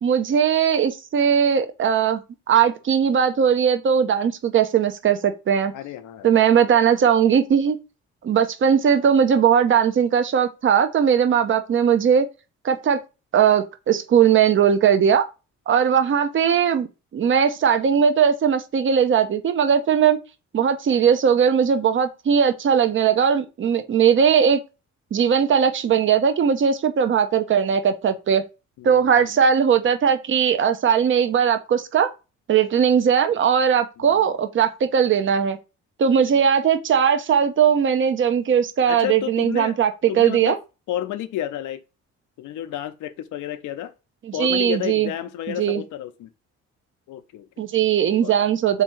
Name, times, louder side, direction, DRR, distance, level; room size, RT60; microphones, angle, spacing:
voice 1, 0.0-2.2 2.5-5.7 6.2-7.8 8.2-12.3 12.6-13.0 13.3-15.3 15.7-16.9 17.1-20.2 20.5-24.6 25.1-28.4 28.8-32.1 32.5-35.6 36.0-40.6 44.2-45.1 45.5-45.8 47.6-48.8, right 7 dB, 40° right, 0.6 m, -19 dB
voice 2, 5.7-6.3 28.8-29.4 34.0-34.2 36.3-36.4 38.9-39.8 40.1-40.6 40.9-41.8 42.4-43.9 44.3-46.3 47.1-47.5 48.2-48.3, left 12 dB, 80° left, 0.6 m, -31 dB
3.6 x 2.8 x 4.4 m
cardioid pair, 90°, 30 cm